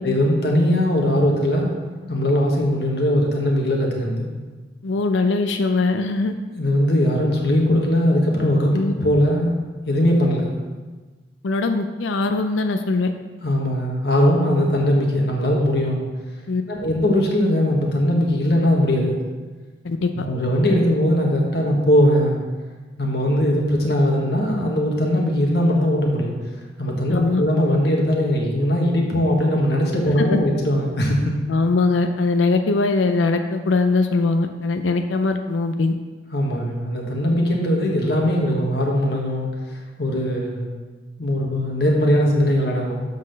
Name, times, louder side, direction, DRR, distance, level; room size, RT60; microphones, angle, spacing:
voice 1, 0.0-1.7 2.1-4.3 6.5-9.5 9.9-10.5 13.4-16.0 16.7-19.2 20.3-22.4 23.0-26.3 26.8-31.3 36.3-40.7 41.2-43.0, equal, 60° left, -1 dB, 1.4 m, -20 dB
voice 2, 4.8-6.3 8.7-8.9 11.4-13.1 16.5-16.6 19.8-20.3 27.1-27.4 30.2-30.4 31.5-36.0, left 3 dB, 85° left, 7 dB, 0.5 m, -21 dB
7.4 x 4.1 x 6.4 m, 1.3 s
head